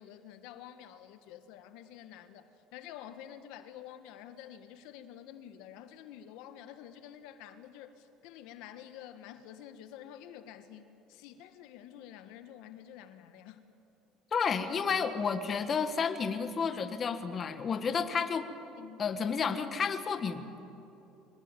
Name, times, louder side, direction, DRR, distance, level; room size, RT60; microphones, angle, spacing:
voice 1, 0.0-13.6 18.8-19.1, left 10 dB, 75° left, 10 dB, 1.5 m, -49 dB
voice 2, 14.3-18.5 19.0-20.6, left 6 dB, 30° left, 9 dB, 1.5 m, -31 dB
24.5 x 19.5 x 9.1 m, 2.8 s
cardioid pair, 145°, 0 cm